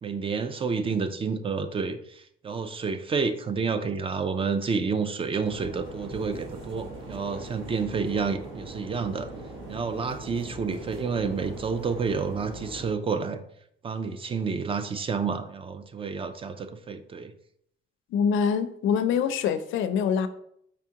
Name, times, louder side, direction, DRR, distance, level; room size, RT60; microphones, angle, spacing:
voice 1, 0.0-9.3 9.7-13.4 13.8-17.3, right 5 dB, 25° right, 9 dB, 0.3 m, -29 dB
sound 1, 5.4-12.9, right 2 dB, 75° right, 1.7 m, -41 dB
voice 2, 18.1-20.3, left 7 dB, 75° left, 11 dB, 0.4 m, -24 dB
5.0 x 3.6 x 2.8 m, 0.72 s
cardioid pair, 130°, 21 cm